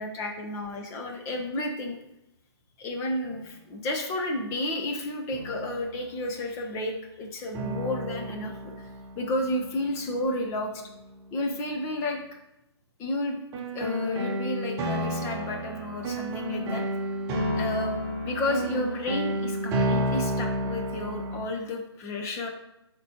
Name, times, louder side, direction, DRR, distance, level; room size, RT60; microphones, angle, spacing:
voice 1, 0.0-2.0 2.8-8.9 9.2-10.8 11.3-12.2 13.0-13.4 13.7-16.8 17.5-18.0 18.2-22.5, left 1 dB, 20° left, 2 dB, 0.9 m, -31 dB
sound 1, 3.3-3.4 5.3-6.3 7.5-10.8 13.5-21.4, equal, 20° right, 1.1 m, -31 dB
10.5 x 4.5 x 2.9 m, 0.87 s
figure-of-eight pair, 140°, 14 cm